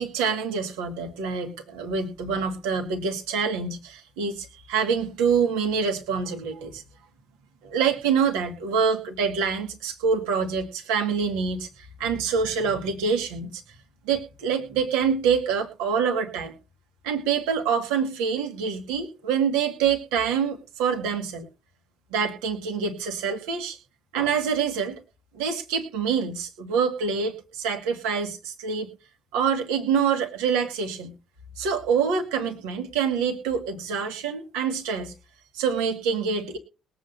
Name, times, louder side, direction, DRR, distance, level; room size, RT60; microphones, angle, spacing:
voice 1, 0.0-6.8 7.6-13.6 14.1-16.5 17.0-21.5 22.1-23.8 24.1-25.0 25.3-28.9 29.3-31.1 31.6-35.1 35.5-36.6, right 6 dB, 65° right, 4 dB, 2.2 m, -26 dB
21.5 x 8.3 x 2.7 m, 0.33 s
figure-of-eight pair, 50°, 0 cm